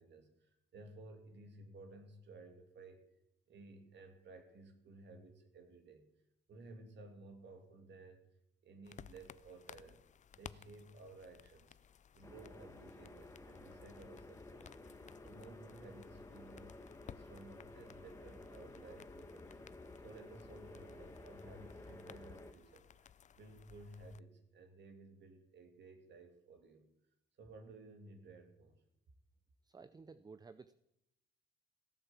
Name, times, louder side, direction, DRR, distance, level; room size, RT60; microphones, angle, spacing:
voice 1, 0.0-3.0 3.5-6.1 6.5-8.2 8.6-10.0 10.3-11.8 12.1-14.7 15.2-16.8 17.1-19.6 20.0-26.9 27.4-28.8, right 2 dB, 65° right, 5 dB, 2.7 m, -56 dB
sound 1, 8.8-24.2, left 8 dB, 40° left, 0.4 m, -59 dB
sound 2, 12.2-22.5, left 2 dB, 15° left, 1.4 m, -54 dB
voice 2, 29.6-30.7, right 4 dB, 20° right, 13 dB, 0.5 m, -54 dB
16.0 x 8.8 x 7.2 m, 0.83 s
cardioid pair, 90°, 20 cm